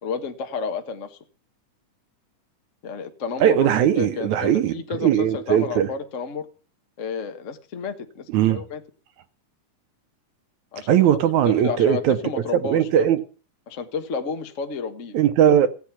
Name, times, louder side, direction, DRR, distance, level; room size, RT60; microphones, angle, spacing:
voice 1, 0.0-1.2 2.8-6.5 7.0-8.8 10.7-11.0 11.4-13.1 13.7-15.2, left 5 dB, 60° left, 0.8 m, -31 dB
voice 2, 3.4-4.7 5.0-5.9 8.3-8.6 10.9-12.2 12.6-13.2 15.1-15.7, right 10 dB, 75° right, 2.1 m, -19 dB
15.0 x 9.5 x 5.8 m
omnidirectional pair, 3.7 m